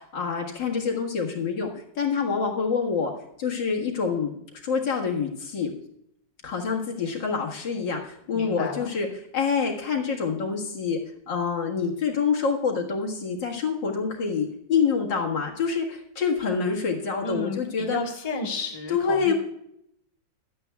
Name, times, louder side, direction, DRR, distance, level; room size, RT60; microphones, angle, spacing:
voice 1, 0.0-3.1 3.4-4.3 4.6-5.8 6.4-9.1 9.3-11.0 11.3-18.0 18.9-19.3, left 5 dB, 75° left, -1 dB, 2.4 m, -26 dB
voice 2, 8.3-8.9 17.2-19.3, left 3 dB, 20° left, 0 dB, 1.5 m, -32 dB
16.0 x 11.5 x 2.3 m, 0.73 s
omnidirectional pair, 2.0 m